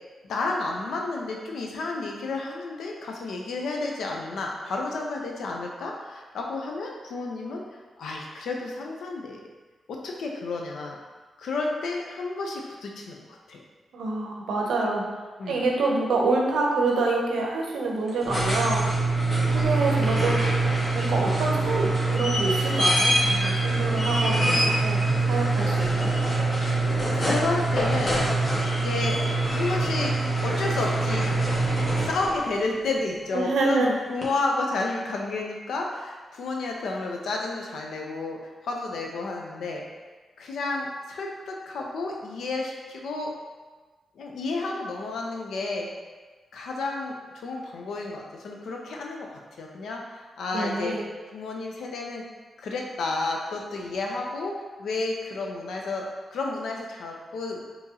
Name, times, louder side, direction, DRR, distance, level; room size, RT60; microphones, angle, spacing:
voice 1, 0.2-7.6 8.0-9.4 9.9-11.0 11.4-13.2 13.5-13.6 14.8-15.0 15.4-15.6 27.1-28.2 28.8-29.2 29.5-30.2 30.4-31.4 32.1-38.4 38.6-39.8 40.4-43.3 44.2-45.9 46.5-49.3 49.6-51.0 51.3-52.2 52.6-57.6, left 3 dB, 80° left, 0 dB, 0.5 m, -31 dB
voice 2, 13.9-15.0 15.5-18.9 19.5-26.1 33.3-33.9 50.5-51.0, right 3 dB, 85° right, -1 dB, 0.6 m, -27 dB
sound 1, 18.1-32.5 34.2-34.3, right 2 dB, 35° left, 1.1 m, -24 dB
3.7 x 2.9 x 2.7 m, 1.3 s
cardioid pair, 75°, 0 cm